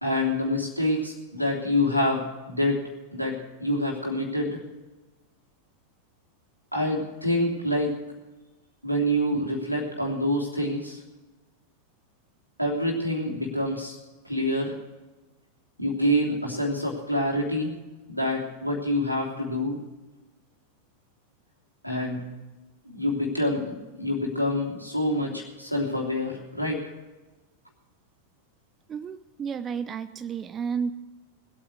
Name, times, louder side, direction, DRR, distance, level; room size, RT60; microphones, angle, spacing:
voice 1, 0.0-2.8 3.1-4.6 6.7-8.0 8.8-11.0 12.6-14.0 14.2-14.7 15.8-17.7 18.1-19.8 21.8-22.3 22.9-26.8, left 1 dB, 90° right, -1 dB, 3.0 m, -26 dB
voice 2, 28.9-30.9, right 6 dB, 25° right, 12 dB, 0.6 m, -32 dB
20.5 x 8.6 x 6.2 m, 1.1 s
figure-of-eight pair, 90°, 0 cm